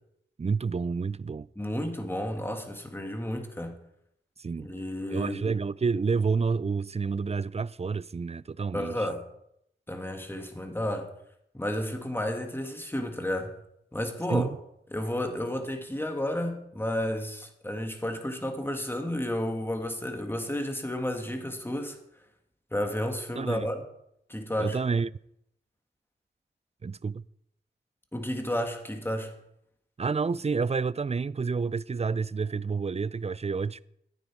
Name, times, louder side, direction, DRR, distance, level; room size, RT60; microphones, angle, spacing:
voice 1, 0.4-1.5 4.4-4.7 5.1-9.0 14.3-14.5 23.4-23.7 24.6-25.1 26.8-27.2 30.0-33.8, right 5 dB, 30° right, 0.4 m, -29 dB
voice 2, 1.6-3.8 4.6-5.5 8.7-9.2 9.9-11.1 11.5-13.5 13.9-14.5 14.9-22.0 22.7-23.8 24.3-24.8 28.1-29.4, left 1 dB, 10° left, 1.9 m, -32 dB
14.0 x 9.3 x 4.6 m
wide cardioid pair, 60°, 20 cm